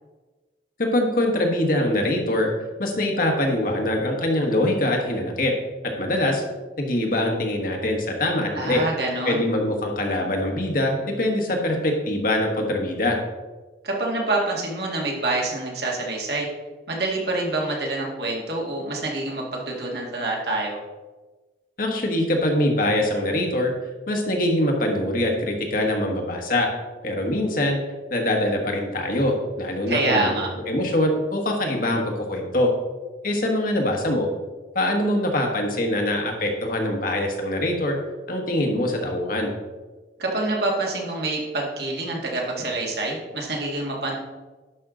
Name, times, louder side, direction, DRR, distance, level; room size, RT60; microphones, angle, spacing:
voice 1, 0.8-2.5 2.8-5.5 5.8-6.4 6.8-8.8 9.2-13.2 21.8-23.7 24.1-26.7 27.0-27.8 28.1-30.4 30.7-32.7 33.2-34.3 34.7-37.9 38.3-39.5, left 1 dB, 50° left, 1 dB, 1.4 m, -23 dB
voice 2, 8.6-9.4 13.8-16.5 16.9-20.8 29.9-30.5 40.2-44.2, right 2 dB, 65° right, -1 dB, 2.0 m, -26 dB
11.0 x 5.5 x 3.8 m, 1.2 s
head